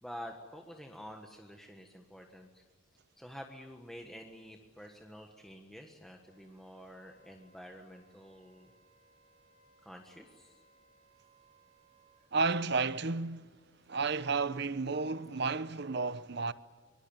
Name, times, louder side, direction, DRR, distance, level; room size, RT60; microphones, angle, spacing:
voice 1, 0.0-2.6 3.2-8.7 9.8-10.6, equal, ahead, 1.5 m, -49 dB
Wind instrument woodwind instrument, 6.2-12.3, right 3 dB, 35° right, 4.8 m, -67 dB
voice 2, 12.3-13.6 13.9-16.5, right 4 dB, 55° right, 0.9 m, -32 dB
24.0 x 24.0 x 8.9 m
head